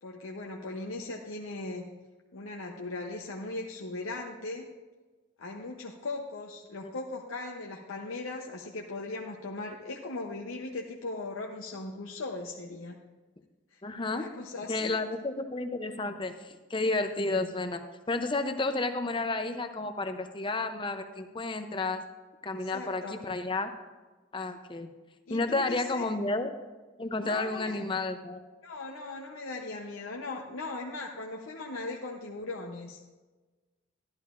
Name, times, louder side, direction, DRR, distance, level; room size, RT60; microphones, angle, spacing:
voice 1, 0.0-1.9 2.3-4.7 5.4-13.0 13.7-13.8 14.1-15.0 22.5-23.2 25.3-26.1 27.2-27.8 28.6-33.0, left 2 dB, 90° left, 0 dB, 0.8 m, -39 dB
voice 2, 13.8-14.3 14.7-17.8 18.1-22.0 22.4-23.7 24.3-24.9 25.3-26.5 27.0-28.4, left 2 dB, 25° left, 8 dB, 0.6 m, -31 dB
13.0 x 11.5 x 2.5 m, 1.3 s
head